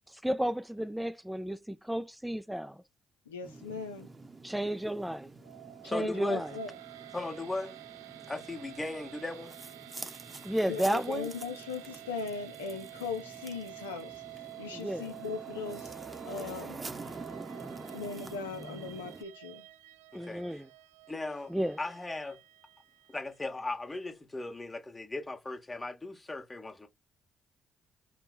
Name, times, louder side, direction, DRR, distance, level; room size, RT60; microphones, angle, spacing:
voice 1, 0.1-2.8 4.4-5.3 5.8-6.5 10.4-11.3 14.7-15.1 20.1-20.7 21.5-21.8, equal, 5° right, 0.4 m, -32 dB
voice 2, 3.3-4.1 5.8-6.7 10.7-15.9 16.2-16.8 17.9-19.7, left 5 dB, 90° left, 0.6 m, -39 dB
sound 1, 3.4-19.2, right 3 dB, 30° right, 0.8 m, -47 dB
sound 2, 5.4-23.6, right 16 dB, 85° right, 0.4 m, -50 dB
voice 3, 5.9-6.4 7.1-7.8 8.3-9.5 20.1-20.6 21.1-22.4 23.1-26.9, left 2 dB, 25° left, 1.5 m, -37 dB
5.3 x 2.2 x 4.1 m
hypercardioid pair, 45°, 0 cm